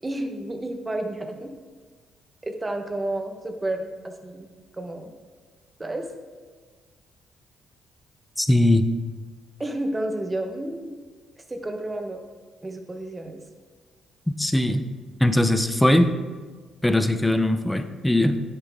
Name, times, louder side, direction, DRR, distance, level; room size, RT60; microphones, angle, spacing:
voice 1, 0.0-1.5 2.4-4.5 4.7-5.1 5.8-6.1 9.6-11.0 11.5-12.2 12.6-13.4, right 1 dB, 20° right, 5 dB, 1.2 m, -31 dB
voice 2, 8.4-8.9 14.4-14.9 15.2-16.1 16.8-18.4, left 1 dB, 5° left, 9 dB, 0.7 m, -20 dB
9.6 x 8.4 x 3.6 m, 1.5 s
cardioid pair, 90°, 0 cm